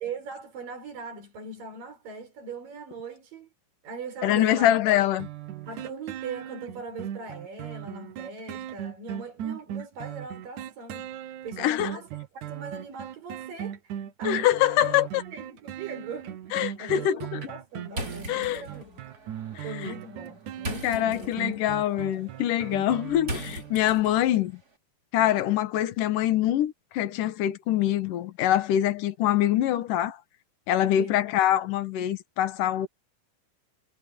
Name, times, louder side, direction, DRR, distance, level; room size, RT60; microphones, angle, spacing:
voice 1, 0.0-3.5 3.8-4.7 5.7-12.1 12.4-14.5 14.8-14.9 15.3-19.0 19.6-21.3 23.2-23.6 24.1-24.2 30.8-31.2, right 4 dB, 85° right, 6.9 m, -40 dB
voice 2, 4.2-5.3 11.6-11.9 14.2-15.2 16.5-17.4 18.3-18.6 19.5-19.9 20.8-24.5 25.1-30.2 30.7-32.9, left 12 dB, 75° left, 2.9 m, -24 dB
sound 1, 5.2-23.9 24.3-24.4, right 10 dB, 70° right, 2.6 m, -38 dB
sound 2, 17.9-24.4, right 1 dB, 25° right, 4.2 m, -40 dB
omnidirectional pair, 3.8 m